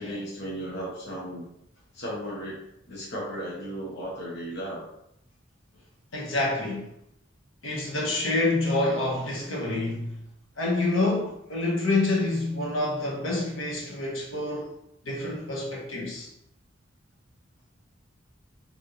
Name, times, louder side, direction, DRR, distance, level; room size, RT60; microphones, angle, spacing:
voice 1, 0.0-1.5 1.9-2.6 2.9-4.8, equal, 55° left, 1.2 m, -35 dB
voice 2, 6.1-6.9 7.6-10.2 10.6-14.7 15.0-16.3, left 2 dB, 80° left, 1.4 m, -27 dB
4.8 x 3.4 x 3.2 m
head